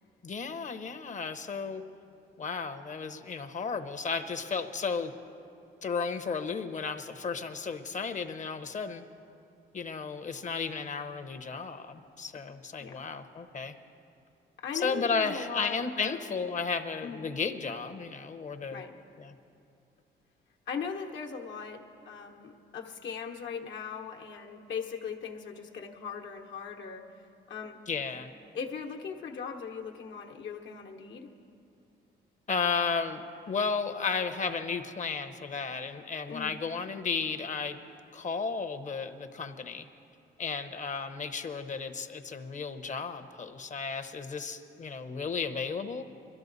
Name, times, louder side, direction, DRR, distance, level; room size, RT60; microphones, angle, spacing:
voice 1, 0.2-1.8 2.4-5.1 5.8-9.0 9.7-13.7 14.7-18.8 19.2-19.3 27.9-28.3 32.5-37.8 38.1-39.9 40.4-46.0, left 5 dB, 40° left, 8 dB, 0.9 m, -33 dB
voice 2, 14.6-16.3 17.0-17.2 18.7-18.9 20.7-27.1 27.5-27.8 28.5-31.3 36.3-36.6, left 6 dB, 70° left, 1 dB, 1.2 m, -39 dB
22.5 x 13.0 x 4.1 m, 2.5 s
cardioid pair, 90°, 20 cm